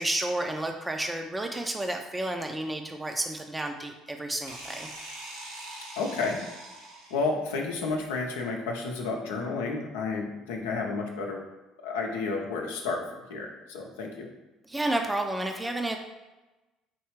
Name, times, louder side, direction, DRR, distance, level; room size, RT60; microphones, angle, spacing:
voice 1, 0.0-4.9 14.7-16.0, right 1 dB, 15° right, 3 dB, 0.5 m, -31 dB
sound 1, 4.5-7.4, right 1 dB, 90° right, 0.8 m, -42 dB
voice 2, 6.0-6.4 7.1-11.4 11.8-13.0 13.3-14.3, left 4 dB, 80° left, 1 dB, 0.6 m, -31 dB
4.4 x 3.2 x 3.1 m, 1.1 s
hypercardioid pair, 55°, 0 cm